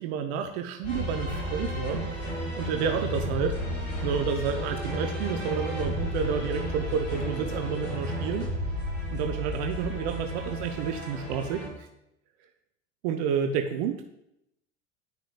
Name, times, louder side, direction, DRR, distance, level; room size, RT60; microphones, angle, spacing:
voice 1, 0.0-2.0 2.6-8.5 9.1-11.9 13.0-14.0, right 7 dB, 60° right, 5 dB, 0.7 m, -30 dB
sound 1, 0.8-11.7, equal, 85° left, 2.9 m, -32 dB
10.0 x 6.0 x 2.4 m, 0.81 s
hypercardioid pair, 75°, 37 cm